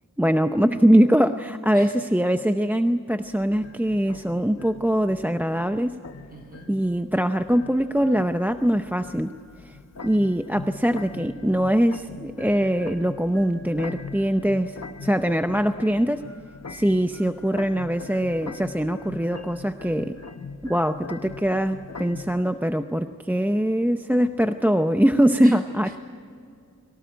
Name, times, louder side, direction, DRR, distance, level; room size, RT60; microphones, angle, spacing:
voice 1, 0.2-6.0 6.7-9.3 9.6-9.8 10.0-16.3 16.7-20.2 20.7-26.0, equal, 5° right, 8 dB, 0.6 m, -22 dB
sound 1, 3.3-22.4, left 4 dB, 50° left, 1.2 m, -42 dB
voice 2, 6.3-6.7 25.4-26.0, right 1 dB, 30° right, 4 dB, 4.3 m, -43 dB
23.0 x 18.0 x 9.2 m, 2.4 s
wide cardioid pair, 100°, 33 cm